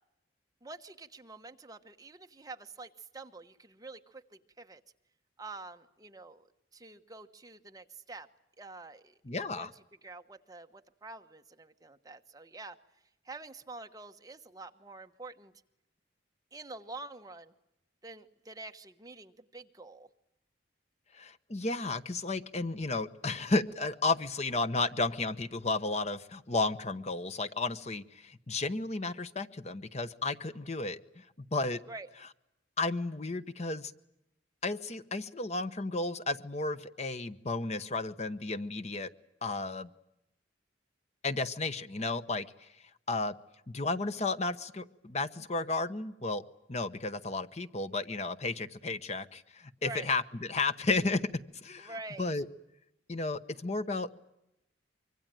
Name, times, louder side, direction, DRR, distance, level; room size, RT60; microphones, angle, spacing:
voice 1, 0.6-4.8 5.4-8.3 8.6-9.7 10.0-12.8 13.2-15.5 16.5-17.5 18.0-20.1 31.9-32.1 49.8-50.1 51.8-52.4, right 3 dB, 20° right, 6 dB, 1.1 m, -47 dB
voice 2, 9.3-9.7 21.1-31.2 31.5-31.8 32.8-33.9 34.6-39.1 39.4-39.9 41.2-42.7 43.1-43.3 43.7-46.4 46.7-51.3 51.6-51.9 52.2-52.4 53.1-54.2, left 3 dB, 35° left, 12 dB, 0.9 m, -33 dB
25.0 x 24.5 x 9.0 m, 0.85 s
head